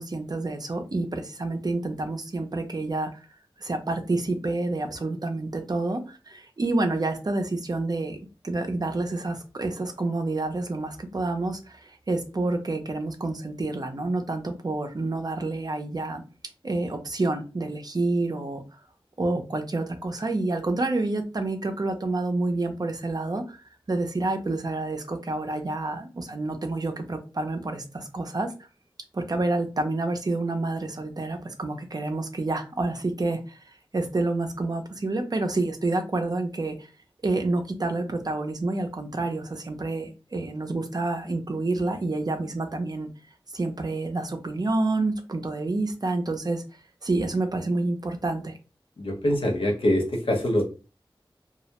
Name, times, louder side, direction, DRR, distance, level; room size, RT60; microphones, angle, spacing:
voice 1, 0.0-3.2 3.6-8.2 8.4-16.2 16.6-18.8 19.2-28.5 29.1-33.6 33.9-36.9 37.2-43.1 43.5-46.6 47.0-48.5, right 2 dB, 45° right, 5 dB, 0.5 m, -28 dB
voice 2, 49.0-50.6, left 1 dB, 80° left, 1 dB, 0.7 m, -24 dB
2.3 x 2.1 x 2.8 m, 0.32 s
wide cardioid pair, 55°, 9 cm